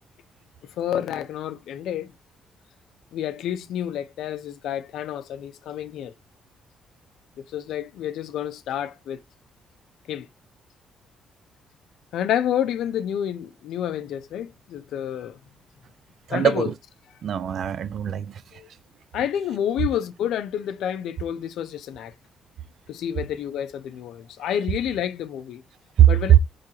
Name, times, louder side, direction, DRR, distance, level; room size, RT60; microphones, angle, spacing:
voice 1, 0.8-2.1 3.1-6.1 7.5-9.2 10.1-10.3 12.1-15.4 16.3-16.7 18.5-18.7 19.1-22.1 22.9-25.6 26.1-26.3, left 10 dB, 80° left, 0.5 m, -29 dB
voice 2, 16.3-16.7 17.2-18.6 26.0-26.4, right 10 dB, 65° right, 0.4 m, -19 dB
3.9 x 3.2 x 2.7 m
cardioid pair, 90°, 0 cm